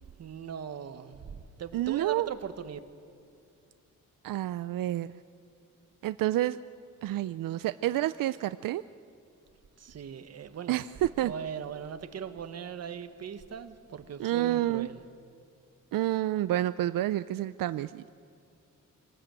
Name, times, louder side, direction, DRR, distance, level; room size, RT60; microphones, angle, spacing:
voice 1, 0.0-2.8 9.8-10.9 11.2-15.0, right 7 dB, 50° right, 1.3 m, -40 dB
voice 2, 1.7-2.3 4.2-5.2 6.0-6.6 7.0-8.8 10.7-11.3 14.2-14.9 15.9-18.1, right 14 dB, 85° right, 0.5 m, -29 dB
26.0 x 18.5 x 9.0 m
wide cardioid pair, 150°, 32 cm